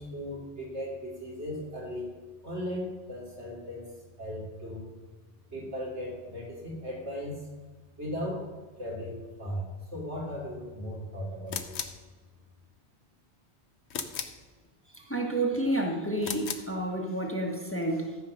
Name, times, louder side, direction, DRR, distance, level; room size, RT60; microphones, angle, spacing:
voice 1, 0.0-2.1 2.4-3.8 4.2-4.8 5.5-7.4 8.0-8.5 8.8-9.6 9.9-11.8, equal, 80° right, -3 dB, 3.4 m, -37 dB
sound 1, 11.5-12.0 13.9-14.4 16.2-16.7, left 7 dB, 75° left, 1.1 m, -36 dB
voice 2, 14.9-18.2, right 1 dB, 10° left, 1 dB, 1.3 m, -30 dB
13.5 x 5.7 x 6.4 m, 1.3 s
omnidirectional pair, 1.1 m